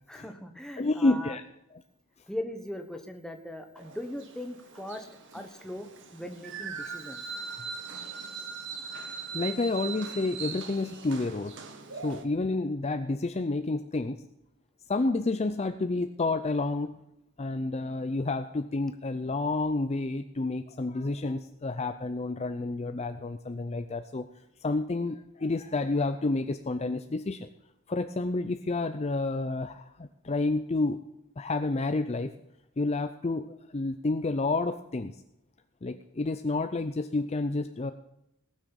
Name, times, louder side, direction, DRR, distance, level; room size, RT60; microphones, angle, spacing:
voice 1, 0.1-1.3 2.3-5.1 5.3-5.9 6.1-7.2, left 1 dB, 5° left, 5 dB, 1.2 m, -39 dB
voice 2, 0.8-1.4 9.3-11.6 12.0-14.2 14.9-16.9 17.4-24.3 24.6-27.5 27.9-31.0 31.4-32.3 32.8-35.1 35.8-37.9, left 2 dB, 30° left, 9 dB, 0.5 m, -30 dB
sound 1, 3.7-12.2, right 6 dB, 55° right, 1.4 m, -41 dB
18.5 x 6.4 x 7.0 m, 0.84 s
head